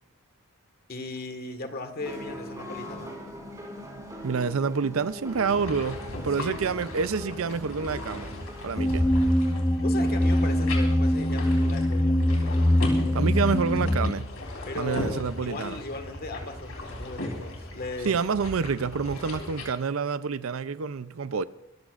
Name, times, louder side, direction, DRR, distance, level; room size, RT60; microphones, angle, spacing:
voice 1, 0.9-3.2 6.3-6.6 9.8-12.2 14.6-18.1, left 2 dB, 45° left, 1.6 m, -37 dB
sound 1, 2.0-9.1, equal, 15° right, 4.4 m, -41 dB
voice 2, 4.2-6.0 6.2-8.3 8.6-9.1 13.1-14.3 14.8-15.8 18.0-21.5, right 5 dB, 70° right, 0.5 m, -28 dB
sound 2, 5.3-19.6, left 1 dB, 75° left, 3.8 m, -37 dB
sound 3, 8.8-14.1, left 1 dB, 15° left, 0.6 m, -23 dB
24.0 x 14.5 x 2.5 m
head